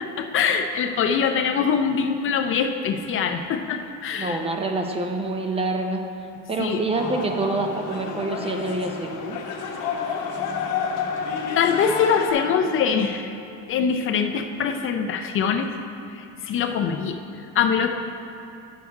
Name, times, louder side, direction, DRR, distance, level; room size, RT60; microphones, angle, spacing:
voice 1, 0.0-4.4 6.6-6.8 11.6-13.3 13.7-15.7 16.1-17.9, left 6 dB, 40° left, 6 dB, 0.4 m, -23 dB
voice 2, 4.2-6.1 6.5-9.4, right 2 dB, 20° right, 3 dB, 0.5 m, -26 dB
sound 1, 7.0-12.3, left 5 dB, 70° left, 1.1 m, -29 dB
9.6 x 6.3 x 4.7 m, 2.8 s
cardioid pair, 150°, 32 cm